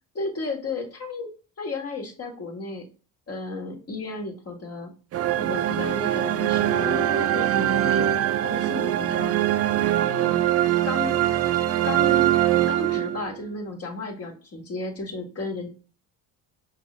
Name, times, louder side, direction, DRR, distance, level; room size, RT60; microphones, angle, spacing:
voice 1, 0.1-1.3 1.6-2.8 3.3-4.9 5.4-8.1 8.4-9.4 10.1-10.4 10.8-11.1 11.8-12.3 12.7-15.7, left 3 dB, 35° left, 1 dB, 1.9 m, -33 dB
sound 1, 5.1-13.5, right 12 dB, 40° right, 0.4 m, -23 dB
5.3 x 2.7 x 3.3 m, 0.36 s
supercardioid pair, 85°, 40 cm